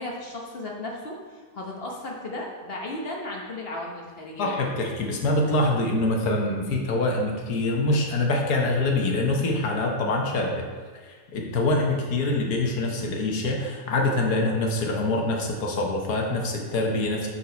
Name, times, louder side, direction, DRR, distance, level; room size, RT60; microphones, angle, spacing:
voice 1, 0.0-4.6, left 1 dB, 45° left, -1 dB, 1.0 m, -35 dB
voice 2, 4.4-10.6 11.1-17.3, left 2 dB, 75° left, 0 dB, 1.5 m, -25 dB
6.7 x 4.6 x 5.2 m, 1.5 s
omnidirectional pair, 1.7 m